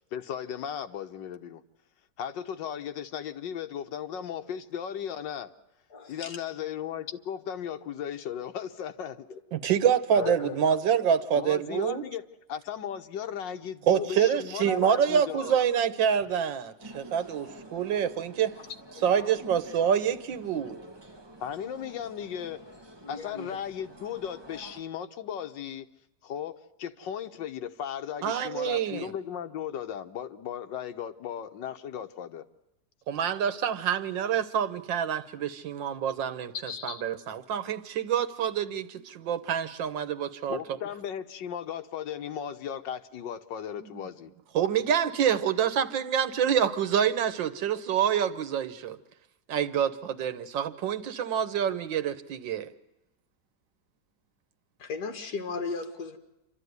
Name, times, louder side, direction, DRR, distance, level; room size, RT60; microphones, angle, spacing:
voice 1, 0.0-1.6 2.2-5.5 6.1-9.3 11.4-12.2 12.5-15.6 21.4-22.6 23.1-25.9 26.2-32.4 36.7-37.0 40.5-44.3, left 9 dB, 80° left, 8 dB, 1.7 m, -36 dB
voice 2, 5.9-6.4 9.3-9.4 10.1-10.6 19.0-19.4 23.0-23.6 54.8-56.2, left 4 dB, 60° left, 6 dB, 2.4 m, -36 dB
voice 3, 9.5-12.0 13.9-18.6 19.0-20.8 28.2-29.1 33.1-40.6 43.8-43.9 44.5-49.0 49.5-52.7, right 8 dB, 90° right, 12 dB, 1.8 m, -27 dB
sound 1, 16.8-24.8, right 1 dB, 15° right, 1.6 m, -49 dB
28.0 x 12.5 x 9.5 m, 0.95 s
omnidirectional pair, 2.0 m